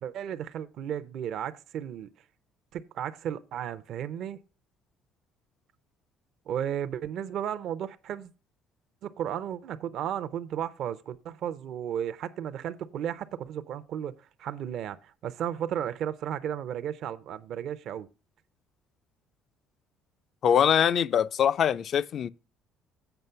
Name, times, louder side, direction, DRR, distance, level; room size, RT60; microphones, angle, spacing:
voice 1, 0.0-2.1 2.7-4.4 6.5-8.3 9.0-18.1, right 9 dB, 65° right, 0.5 m, -34 dB
voice 2, 20.4-22.3, left 8 dB, 55° left, 0.4 m, -23 dB
8.0 x 5.3 x 5.6 m
cardioid pair, 90°, 0 cm